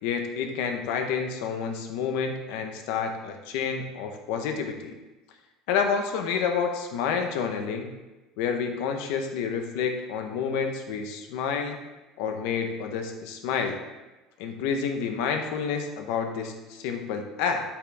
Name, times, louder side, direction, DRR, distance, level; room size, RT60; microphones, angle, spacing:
voice 1, 0.0-4.9 5.7-7.9 8.4-11.8 12.2-13.8 14.4-17.6, left 6 dB, 70° left, 5 dB, 1.1 m, -29 dB
8.2 x 6.0 x 3.6 m, 1.1 s
cardioid pair, 165°, 0 cm